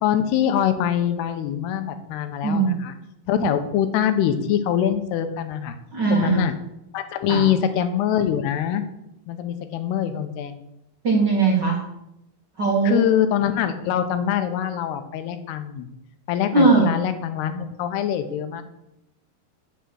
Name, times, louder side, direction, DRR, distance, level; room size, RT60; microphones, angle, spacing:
voice 1, 0.0-2.9 3.3-5.8 6.1-6.5 6.9-8.8 9.3-10.6 12.8-15.9 16.3-18.6, left 9 dB, 85° left, 9 dB, 2.9 m, -24 dB
voice 2, 2.4-2.8 3.4-3.5 5.9-6.4 7.3-7.4 11.0-11.8 12.6-13.0 16.5-16.9, right 4 dB, 55° right, -2 dB, 1.1 m, -19 dB
8.1 x 7.5 x 6.3 m, 0.84 s
omnidirectional pair, 4.7 m